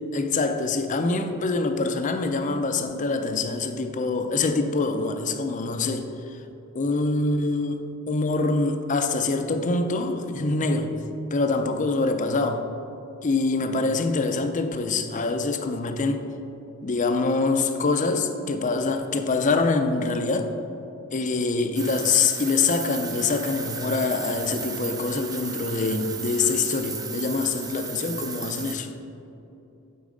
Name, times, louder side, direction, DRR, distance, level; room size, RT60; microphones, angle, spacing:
voice 1, 0.1-6.4 6.7-10.9 11.3-12.6 13.2-16.3 16.8-20.5 21.1-28.9, left 3 dB, 35° left, 7 dB, 0.5 m, -25 dB
sound 1, 21.8-28.7, right 5 dB, 20° right, 0.5 m, -35 dB
8.3 x 4.5 x 5.1 m, 2.9 s
head